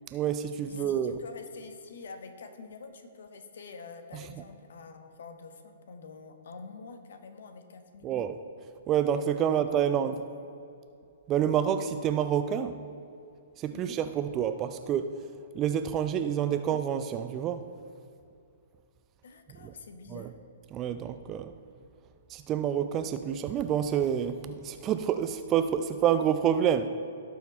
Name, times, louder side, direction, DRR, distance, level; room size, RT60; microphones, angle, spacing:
voice 1, 0.1-1.2 4.1-4.4 8.0-8.4 8.9-10.2 11.3-12.8 13.6-15.2 15.5-17.7 19.6-19.7 20.1-20.3 20.7-21.5 22.3-26.9, right 9 dB, 25° right, 10 dB, 0.4 m, -28 dB
voice 2, 0.6-8.4 9.4-9.6 9.9-10.2 13.7-14.0 16.5-16.6 19.2-20.3, left 4 dB, 60° left, 7 dB, 1.0 m, -47 dB
17.0 x 5.7 x 4.2 m, 2.5 s
figure-of-eight pair, 115°, 0 cm